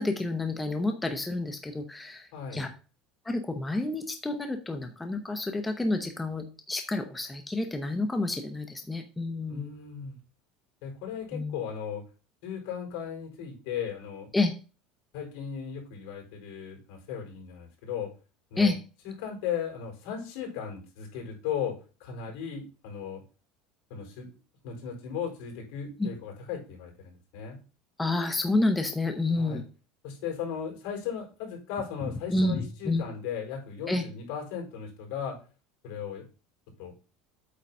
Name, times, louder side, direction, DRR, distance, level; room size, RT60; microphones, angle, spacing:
voice 1, 0.0-2.7 3.2-9.7 11.3-11.6 14.3-14.5 18.6-18.8 26.0-26.1 28.0-29.6 32.3-33.1 33.9-34.0, left 2 dB, 10° left, 5 dB, 0.8 m, -29 dB
voice 2, 2.3-2.7 9.5-10.2 10.8-12.0 12.4-14.3 15.1-18.1 18.5-18.7 19.0-23.2 23.9-24.4 24.6-27.6 29.3-29.6 30.0-35.4 35.8-36.3 36.8-36.9, left 7 dB, 70° left, 1 dB, 4.2 m, -36 dB
8.5 x 4.0 x 5.4 m, 0.35 s
cardioid pair, 145°, 0 cm